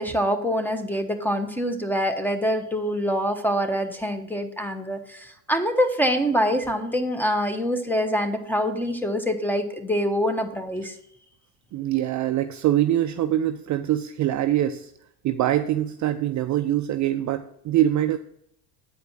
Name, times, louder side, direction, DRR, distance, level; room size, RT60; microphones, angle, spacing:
voice 1, 0.0-11.0, equal, 5° left, 7 dB, 1.1 m, -25 dB
voice 2, 11.7-14.9 15.2-18.2, right 12 dB, 40° right, 9 dB, 0.5 m, -24 dB
8.4 x 5.0 x 6.0 m, 0.72 s
hypercardioid pair, 75°, 45 cm